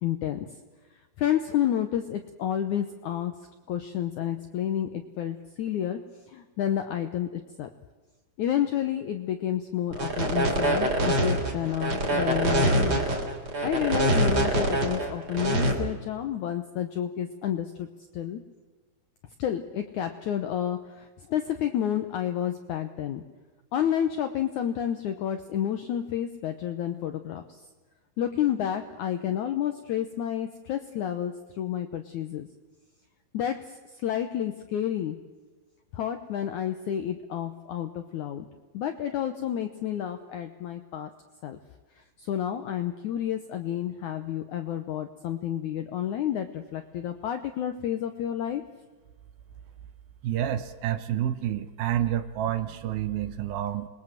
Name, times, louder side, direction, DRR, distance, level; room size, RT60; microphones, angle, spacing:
voice 1, 0.0-0.5 1.2-3.3 3.7-6.0 6.3-7.7 8.4-13.0 13.6-17.9 18.1-18.4 19.4-23.2 23.7-27.6 28.2-32.5 33.3-35.2 35.9-38.5 38.7-41.1 41.4-41.6 42.2-48.6, left 10 dB, 75° left, 8 dB, 1.8 m, -30 dB
sound 1, 9.9-15.7, right 1 dB, 35° right, 3.8 m, -24 dB
voice 2, 50.2-53.9, right 11 dB, 75° right, 11 dB, 2.7 m, -29 dB
27.5 x 21.0 x 7.6 m, 1.3 s
omnidirectional pair, 4.7 m